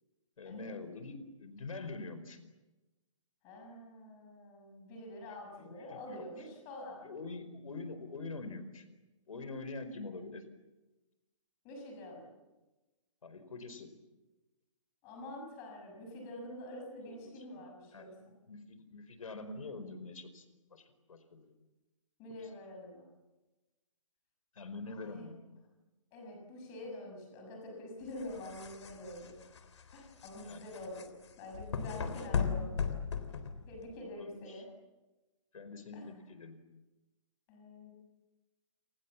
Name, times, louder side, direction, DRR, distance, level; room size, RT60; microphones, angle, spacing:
voice 1, 0.4-2.4 5.3-6.3 7.0-8.8 9.3-10.4 13.2-13.9 17.1-17.3 17.9-20.4 20.7-21.5 24.6-25.4 30.4-30.7 34.2-34.6 35.5-36.6, left 3 dB, 85° left, 11 dB, 4.8 m, -45 dB
voice 2, 3.4-7.0 11.6-12.3 15.0-18.1 22.2-23.1 24.9-25.3 26.1-29.4 29.9-32.9 33.7-34.7 35.9-36.1 37.5-37.9, left 1 dB, 15° left, 1 dB, 6.4 m, -46 dB
sound 1, 28.1-34.0, left 6 dB, 60° left, 3.6 m, -37 dB
29.0 x 28.0 x 7.3 m, 1.1 s
hypercardioid pair, 180°, 17 cm